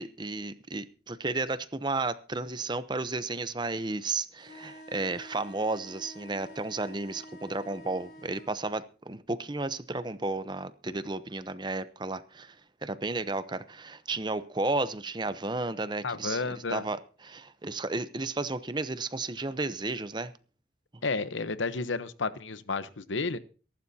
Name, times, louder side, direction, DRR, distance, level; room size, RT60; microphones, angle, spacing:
voice 1, 0.0-20.3 20.9-21.0, right 3 dB, 25° right, 13 dB, 0.7 m, -33 dB
sound 1, 4.4-8.5, equal, 60° left, 4.2 m, -49 dB
voice 2, 16.0-16.8 21.0-23.4, left 4 dB, 85° left, 14 dB, 1.0 m, -31 dB
23.5 x 12.0 x 2.8 m, 0.37 s
head